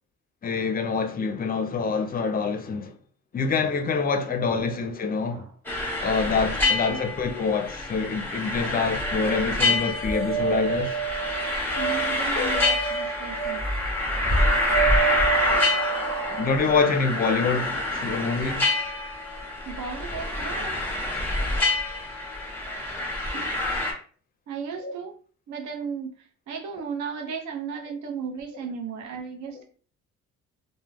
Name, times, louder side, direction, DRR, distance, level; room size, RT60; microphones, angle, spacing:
voice 1, 0.4-2.9 3.3-5.5 6.0-11.0 12.3-12.7 16.3-18.7 24.8-24.9 29.5-29.6, left 5 dB, 30° left, 0.5 m, -26 dB
sound 1, 5.6-23.9, left 2 dB, 5° left, 0.8 m, -27 dB
voice 2, 6.6-7.0 11.8-13.6 19.7-20.9 23.3-23.7 24.5-25.1 25.5-29.6, right 6 dB, 70° right, 0.7 m, -35 dB
sound 2, 8.9-18.1, right 7 dB, 45° right, 1.2 m, -30 dB
2.3 x 2.1 x 3.2 m
cardioid pair, 90°, 30 cm